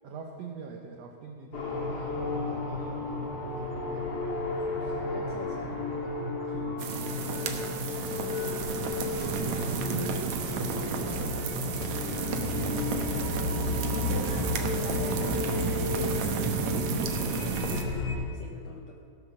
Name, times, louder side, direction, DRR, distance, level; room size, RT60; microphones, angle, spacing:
voice 1, 0.0-4.3 4.6-6.8 9.2-11.8 13.6-14.5, right 4 dB, 90° right, 2 dB, 1.4 m, -44 dB
sound 1, 1.5-18.2, left 3 dB, 40° left, 1.7 m, -33 dB
voice 2, 5.1-5.7 8.1-8.9 12.6-18.8, left 4 dB, 75° left, 0 dB, 1.6 m, -43 dB
sound 2, 6.8-17.8, right 6 dB, 70° right, 1.9 m, -32 dB
sound 3, 8.4-17.7, left 4 dB, 60° left, 1.6 m, -42 dB
16.5 x 7.0 x 6.4 m, 2.6 s
omnidirectional pair, 4.2 m